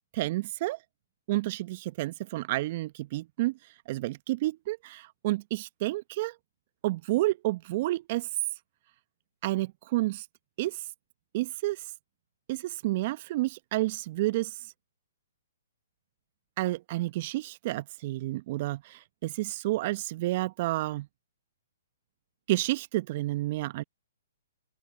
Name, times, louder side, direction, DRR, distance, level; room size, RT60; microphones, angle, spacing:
voice 1, 0.1-0.8 1.3-3.5 3.9-6.3 6.8-8.3 9.4-10.3 10.6-10.8 11.3-11.9 12.5-14.7 16.6-21.1 22.5-23.8, right 18 dB, 45° right, 1.0 m, -30 dB
open air
figure-of-eight pair, 125°, 0 cm